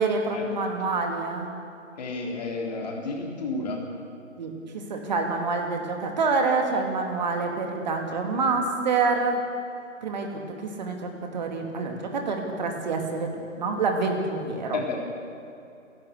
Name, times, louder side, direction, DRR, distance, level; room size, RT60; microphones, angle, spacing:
voice 1, 0.0-1.5 4.4-9.4 10.0-10.3 10.6-13.3 13.6-14.8, right 4 dB, 35° right, 3 dB, 2.7 m, -27 dB
voice 2, 2.0-3.8 14.7-15.0, left 3 dB, 30° left, -1 dB, 3.8 m, -31 dB
29.5 x 12.0 x 8.2 m, 2.6 s
figure-of-eight pair, 150°, 39 cm